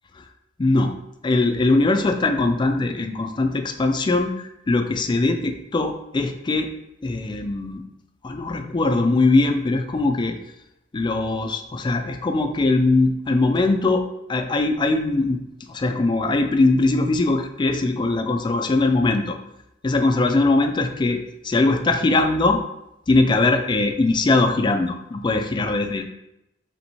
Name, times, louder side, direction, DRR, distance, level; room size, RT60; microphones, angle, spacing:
voice 1, 0.6-0.9 1.2-6.7 7.0-7.8 8.2-10.4 10.9-19.4 19.8-22.6 23.1-26.0, left 2 dB, 25° left, 6 dB, 0.3 m, -21 dB
3.4 x 2.8 x 4.3 m, 0.85 s
head